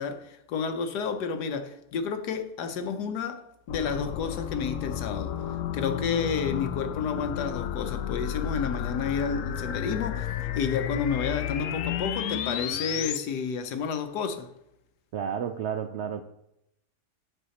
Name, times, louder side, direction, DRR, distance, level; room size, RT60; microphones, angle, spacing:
voice 1, 0.0-5.3 5.7-14.5, left 6 dB, 85° left, 1.4 m, -31 dB
sound 1, 3.7-13.2, left 10 dB, 65° left, 0.8 m, -32 dB
voice 2, 15.1-16.2, right 8 dB, 75° right, 0.6 m, -31 dB
9.3 x 6.7 x 4.1 m
omnidirectional pair, 1.7 m